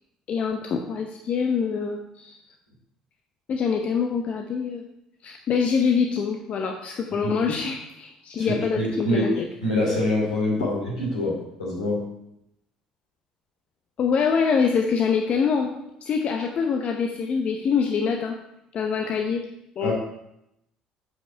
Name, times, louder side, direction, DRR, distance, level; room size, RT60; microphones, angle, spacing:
voice 1, 0.3-2.4 3.5-4.8 5.2-9.5 14.0-15.7 16.0-18.4 18.7-19.4 19.8-19.9, left 6 dB, 45° left, 3 dB, 0.7 m, -25 dB
voice 2, 8.4-9.3 9.6-12.1 19.8-19.9, left 1 dB, 85° left, -5 dB, 3.0 m, -25 dB
7.9 x 5.4 x 4.6 m, 0.81 s
figure-of-eight pair, 55°, 3 cm